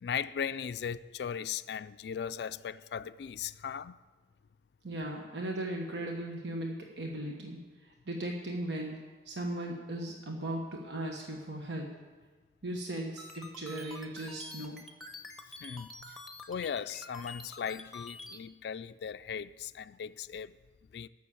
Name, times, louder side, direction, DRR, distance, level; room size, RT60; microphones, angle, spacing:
voice 1, 0.0-4.0 15.6-16.1 16.5-20.5 20.9-21.1, left 7 dB, 65° left, 0.3 m, -38 dB
voice 2, 4.8-9.0 9.2-11.9 12.6-14.8, right 1 dB, 70° right, 1.3 m, -37 dB
sound 1, 13.2-18.4, left 2 dB, ahead, 1.0 m, -47 dB
14.5 x 6.4 x 8.3 m
head